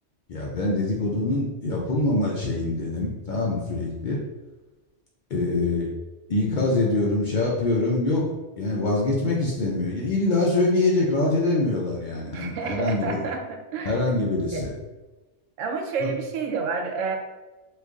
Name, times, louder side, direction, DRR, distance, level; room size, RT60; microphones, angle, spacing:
voice 1, 0.3-4.2 5.3-5.9 6.3-8.2 8.6-13.2 13.9-14.7, left 2 dB, 55° left, -3 dB, 0.5 m, -24 dB
voice 2, 12.3-14.0 14.5-14.7 15.6-17.2, right 5 dB, 85° right, 3 dB, 0.9 m, -29 dB
3.1 x 2.4 x 3.5 m, 1.1 s
omnidirectional pair, 1.3 m